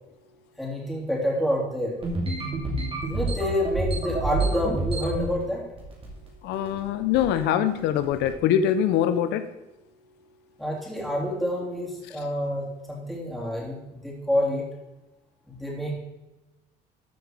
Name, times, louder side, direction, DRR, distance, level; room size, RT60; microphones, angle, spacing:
voice 1, 0.6-1.9 3.1-5.6 10.6-13.8 14.0-14.6 15.5-15.9, left 1 dB, ahead, -4 dB, 3.4 m, -28 dB
sound 1, 2.0-5.3 5.8-6.3 6.5-6.8 7.1-7.4 8.0-8.3, right 2 dB, 35° right, 2.9 m, -28 dB
voice 2, 6.4-9.4, left 9 dB, 85° left, 11 dB, 0.6 m, -23 dB
14.0 x 5.1 x 4.6 m, 1.0 s
cardioid pair, 110°, 17 cm